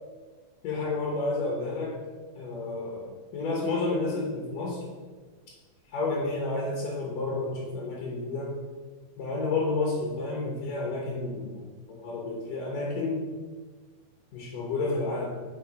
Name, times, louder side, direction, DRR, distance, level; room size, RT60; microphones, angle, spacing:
voice 1, 0.6-2.0 2.3-4.8 5.9-8.5 9.2-13.3 14.3-15.4, left 3 dB, 70° left, -3 dB, 2.5 m, -30 dB
6.2 x 3.8 x 5.3 m, 1.4 s
omnidirectional pair, 4.2 m